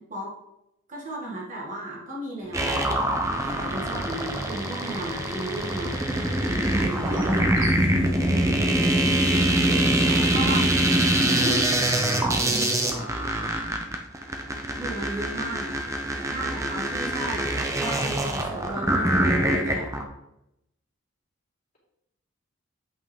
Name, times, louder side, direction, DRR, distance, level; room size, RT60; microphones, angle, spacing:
voice 1, 0.9-2.9 3.4-5.9 6.7-7.3 10.1-10.7 11.3-11.6 14.7-15.8 16.1-19.9, right 1 dB, 35° right, -4 dB, 1.7 m, -34 dB
Motorcycle, 2.4-10.7, equal, 60° right, 2.2 m, -40 dB
sound 1, 2.5-20.0, right 1 dB, 15° right, 0.7 m, -24 dB
voice 2, 8.0-9.2 9.7-10.4 12.4-13.1, equal, 35° left, -6 dB, 3.0 m, -36 dB
8.1 x 5.6 x 3.6 m, 0.85 s
head